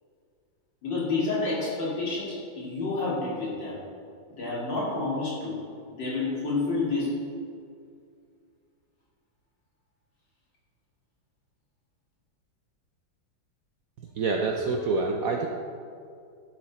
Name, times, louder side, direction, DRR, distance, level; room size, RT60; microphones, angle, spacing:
voice 1, 0.8-3.8 4.4-5.6 5.9-7.3, left 3 dB, 70° left, -6 dB, 3.2 m, -29 dB
voice 2, 14.0-15.5, right 3 dB, 70° right, 2 dB, 0.8 m, -27 dB
12.5 x 6.0 x 4.2 m, 2.3 s
omnidirectional pair, 2.1 m